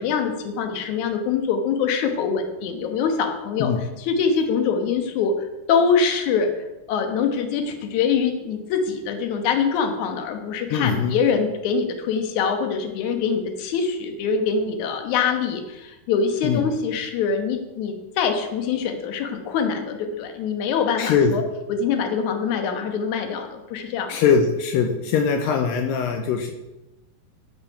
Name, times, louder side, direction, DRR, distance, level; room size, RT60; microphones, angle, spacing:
voice 1, 0.0-5.3 5.7-6.5 6.9-21.4 21.7-24.2, left 6 dB, 65° left, 5 dB, 2.0 m, -24 dB
voice 2, 10.7-11.1 16.4-16.6 21.0-21.3 24.1-26.5, left 6 dB, 85° left, 5 dB, 2.0 m, -21 dB
10.5 x 7.2 x 5.7 m, 1.0 s
omnidirectional pair, 4.9 m